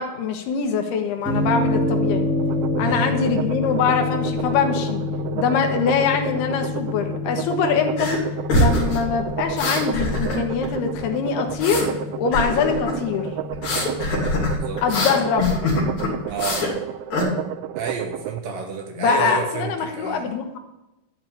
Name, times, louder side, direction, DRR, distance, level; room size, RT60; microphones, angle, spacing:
voice 1, 0.0-2.3 2.8-5.0 5.3-8.1 8.5-11.9 12.2-13.3 14.8-15.6 19.0-20.6, left 6 dB, 75° left, 4 dB, 3.1 m, -23 dB
sound 1, 1.3-15.8, left 2 dB, ahead, 0.8 m, -28 dB
sound 2, 2.4-18.4, right 13 dB, 85° right, 2.1 m, -32 dB
voice 2, 2.8-3.1 14.1-15.2 16.3-16.7 17.8-20.3, right 5 dB, 65° right, 3 dB, 2.7 m, -30 dB
sound 3, 8.0-8.2 8.5-10.7 10.9-11.9 12.3-13.0 13.5-16.7 17.1-17.2, left 1 dB, 45° left, 3.9 m, -23 dB
12.5 x 5.4 x 8.5 m, 0.97 s
omnidirectional pair, 4.8 m